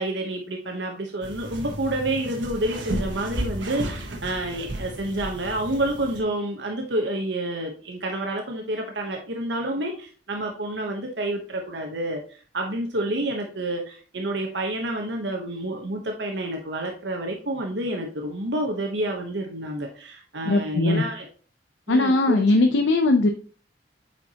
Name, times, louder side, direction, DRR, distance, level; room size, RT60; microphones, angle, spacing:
voice 1, 0.0-12.2 12.5-21.2 21.9-22.4, right 1 dB, 65° right, 2 dB, 1.0 m, -29 dB
sound 1, 1.2-6.2, right 1 dB, 85° right, 1.3 m, -33 dB
voice 2, 20.5-21.0 21.9-23.3, left 2 dB, 75° left, 5 dB, 0.6 m, -19 dB
8.5 x 4.6 x 2.9 m, 0.40 s
head